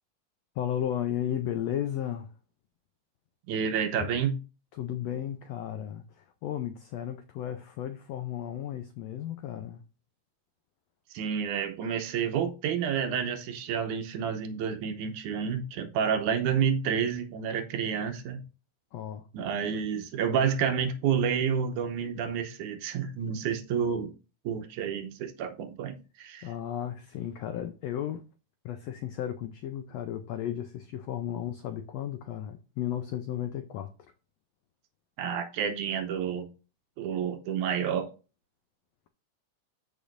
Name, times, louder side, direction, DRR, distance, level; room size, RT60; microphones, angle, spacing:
voice 1, 0.6-2.3 4.0-4.1 4.7-9.8 18.9-19.2 26.4-28.2 28.6-33.9, left 10 dB, 85° left, 1.4 m, -34 dB
voice 2, 3.5-4.4 11.1-18.4 19.3-24.1 24.5-26.5 35.2-36.5 37.0-38.1, right 7 dB, 75° right, 2.2 m, -29 dB
14.0 x 5.1 x 2.5 m
omnidirectional pair, 3.7 m